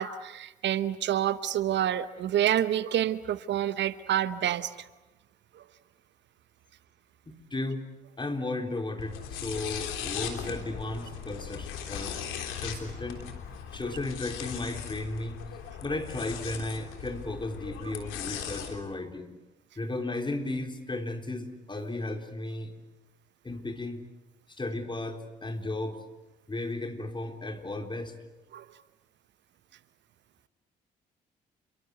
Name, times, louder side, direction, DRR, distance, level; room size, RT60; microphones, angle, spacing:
voice 1, 0.0-4.9 5.5-5.6 28.5-28.7, right 11 dB, 55° right, 15 dB, 0.9 m, -28 dB
voice 2, 7.3-12.2 12.6-13.3 13.7-15.4 15.8-19.3 19.8-22.7 23.4-24.0 24.6-26.0 26.5-28.1, left 2 dB, 20° left, 5 dB, 3.8 m, -34 dB
sound 1, 9.0-18.7, left 8 dB, 70° left, 3.5 m, -38 dB
28.5 x 23.5 x 8.1 m, 1.0 s
hypercardioid pair, 50°, 21 cm